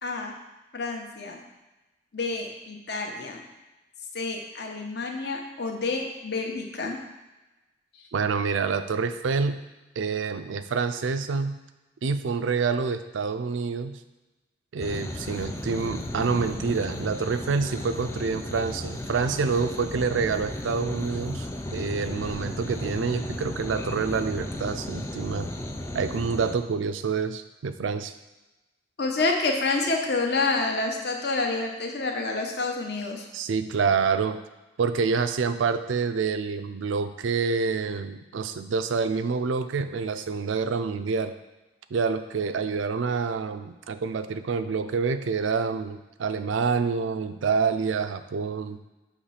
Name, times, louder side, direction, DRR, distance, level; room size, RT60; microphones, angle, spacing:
voice 1, 0.0-0.3 0.7-1.4 2.1-3.4 4.1-7.0 29.0-33.3, left 3 dB, 55° left, 2 dB, 0.8 m, -28 dB
voice 2, 8.1-9.6 10.0-11.6 12.0-14.0 14.7-25.5 25.9-28.1 33.3-34.4 34.8-41.3 41.9-48.8, right 5 dB, 80° right, 10 dB, 0.4 m, -27 dB
sound 1, 14.8-26.6, left 1 dB, 15° left, 0.3 m, -35 dB
6.4 x 3.1 x 5.6 m, 1.1 s
head